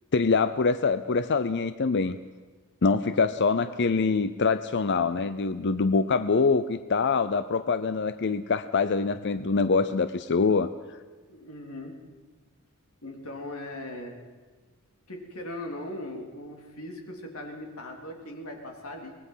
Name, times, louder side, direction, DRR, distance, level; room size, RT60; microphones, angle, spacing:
voice 1, 0.1-2.2 2.8-10.7, left 4 dB, 50° left, 12 dB, 0.6 m, -24 dB
voice 2, 3.1-3.5 11.3-12.0 13.0-14.2 15.1-19.1, left 1 dB, 70° left, 2 dB, 3.3 m, -39 dB
24.5 x 19.5 x 5.7 m, 1.3 s
head